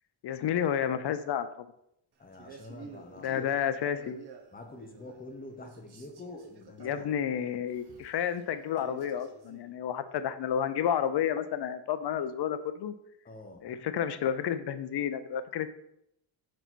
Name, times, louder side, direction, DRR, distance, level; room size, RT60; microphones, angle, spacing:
voice 1, 0.2-1.7 3.2-4.2 6.8-12.9 13.6-15.7, left 9 dB, 60° left, 11 dB, 0.5 m, -31 dB
voice 2, 2.2-3.6 4.5-7.0 13.2-13.8, left 2 dB, 20° left, 3 dB, 0.7 m, -46 dB
Male speech man speaking, 2.3-5.3 5.6-9.7, right 4 dB, 55° right, 0.9 m, -51 dB
6.1 x 4.0 x 4.5 m, 0.78 s
wide cardioid pair, 180°, 48 cm